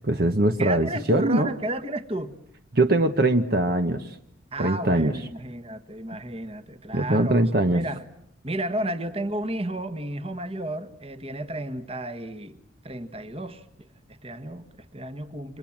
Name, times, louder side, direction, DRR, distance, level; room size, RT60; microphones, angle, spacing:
voice 1, 0.0-1.5 2.7-4.2 4.6-5.1 6.9-7.8, right 1 dB, 50° right, 1.1 m, -22 dB
voice 2, 0.6-2.3 4.5-8.0 8.4-15.6, right 1 dB, 30° right, 1.5 m, -33 dB
29.5 x 25.5 x 7.4 m
head